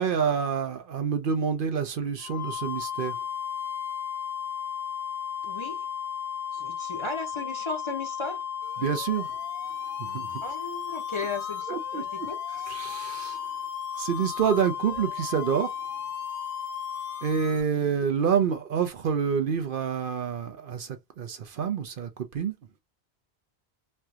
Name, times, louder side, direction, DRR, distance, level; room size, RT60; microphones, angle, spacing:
voice 1, 0.0-3.2 8.8-9.3 10.0-10.4 11.7-13.4 14.0-15.7 17.2-22.5, right 7 dB, 60° right, 0.7 m, -28 dB
sound 1, 2.2-17.5, left 8 dB, 60° left, 0.9 m, -34 dB
voice 2, 5.5-5.8 6.5-8.4 10.4-12.4, left 3 dB, 30° left, 0.7 m, -35 dB
sound 2, 8.6-17.6, left 6 dB, 90° left, 1.0 m, -47 dB
3.3 x 2.3 x 2.7 m
omnidirectional pair, 1.1 m